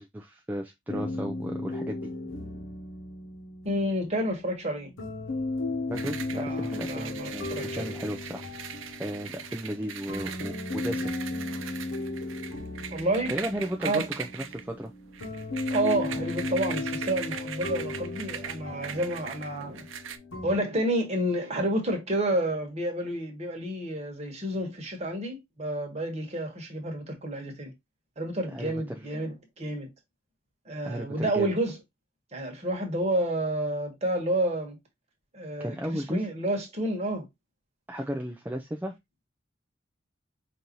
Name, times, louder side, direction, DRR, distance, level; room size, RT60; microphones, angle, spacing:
voice 1, 0.0-2.0 5.9-8.4 8.7-11.1 13.3-14.9 28.5-29.1 30.8-31.5 35.6-36.3 37.9-38.9, equal, 10° right, 0.4 m, -34 dB
sound 1, 0.9-20.6, left 2 dB, 85° left, 1.0 m, -36 dB
voice 2, 3.6-4.9 6.3-8.0 12.9-13.3 13.8-14.1 15.7-19.9 20.4-27.7 28.2-29.9 30.7-31.8 32.3-34.8 35.3-37.3, right 1 dB, 35° right, 1.3 m, -30 dB
sound 2, 5.9-20.2, right 8 dB, 85° right, 0.6 m, -40 dB
5.2 x 2.7 x 2.9 m
head